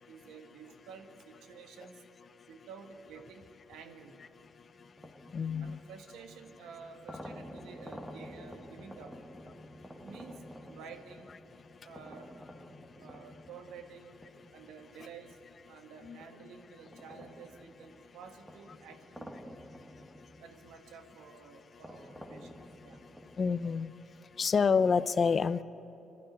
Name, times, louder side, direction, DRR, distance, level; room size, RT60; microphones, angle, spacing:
voice 1, 0.1-2.0 2.5-4.2 5.6-9.2 9.9-11.3 11.8-12.3 13.0-14.1 14.5-15.4 15.7-19.4 20.4-23.0, right 6 dB, 90° right, 6 dB, 1.6 m, -51 dB
sound 1, 4.0-15.7 16.2-23.9, equal, 5° right, 1.6 m, -51 dB
voice 2, 5.3-5.8 16.1-16.2 23.4-23.9 24.4-25.6, left 5 dB, 45° left, 15 dB, 0.5 m, -27 dB
24.0 x 12.0 x 9.7 m, 2.9 s
cardioid pair, 90°, 0 cm